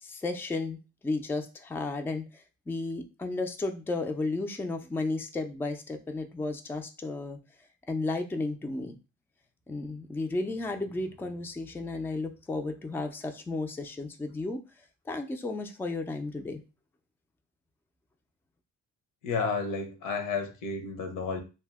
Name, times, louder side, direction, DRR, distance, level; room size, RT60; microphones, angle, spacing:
voice 1, 0.0-7.4 7.9-9.0 9.7-14.6 15.1-16.6, left 3 dB, 10° left, 5 dB, 0.3 m, -33 dB
voice 2, 19.2-21.4, left 4 dB, 85° left, 5 dB, 0.8 m, -31 dB
2.6 x 2.0 x 3.4 m, 0.30 s
cardioid pair, 90°, 30 cm